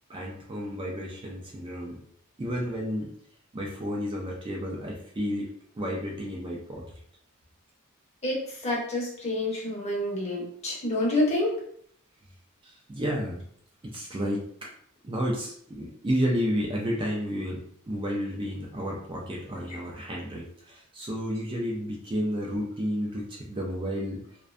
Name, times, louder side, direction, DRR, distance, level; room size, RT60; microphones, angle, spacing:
voice 1, 0.1-2.0 2.4-3.1 3.5-5.5 5.7-6.8 12.6-13.4 13.8-14.7 15.0-24.2, equal, 25° right, -2 dB, 0.4 m, -31 dB
voice 2, 8.2-11.5, left 1 dB, 30° left, -3 dB, 0.7 m, -28 dB
2.5 x 2.1 x 2.4 m, 0.63 s
head